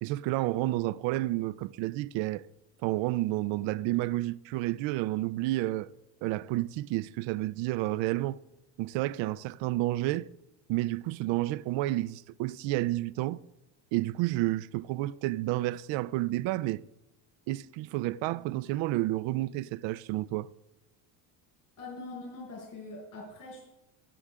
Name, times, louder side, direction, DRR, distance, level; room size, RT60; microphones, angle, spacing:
voice 1, 0.0-2.5 2.8-5.9 6.2-8.4 8.8-10.3 10.7-13.4 13.9-16.8 17.5-20.5, right 17 dB, 65° right, 0.6 m, -30 dB
voice 2, 21.8-23.6, left 2 dB, 40° left, 5.8 m, -43 dB
21.5 x 7.9 x 3.7 m
cardioid pair, 110°, 49 cm